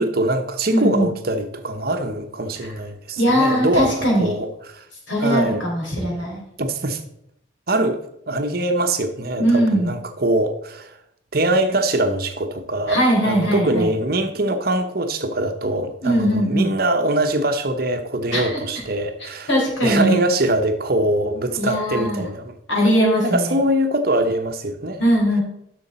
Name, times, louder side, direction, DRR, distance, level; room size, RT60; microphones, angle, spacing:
voice 1, 0.0-4.8 5.2-5.7 6.6-7.0 7.7-10.9 11.3-19.5 19.8-22.5 23.2-25.0, right 1 dB, 50° right, 7 dB, 0.9 m, -23 dB
voice 2, 0.7-1.1 3.2-4.3 5.1-6.4 9.4-9.9 12.9-13.9 16.0-16.7 18.3-18.6 19.5-20.2 21.6-22.3 22.7-23.6 25.0-25.4, equal, 75° left, -2 dB, 4.2 m, -20 dB
10.5 x 6.5 x 4.2 m, 0.77 s
head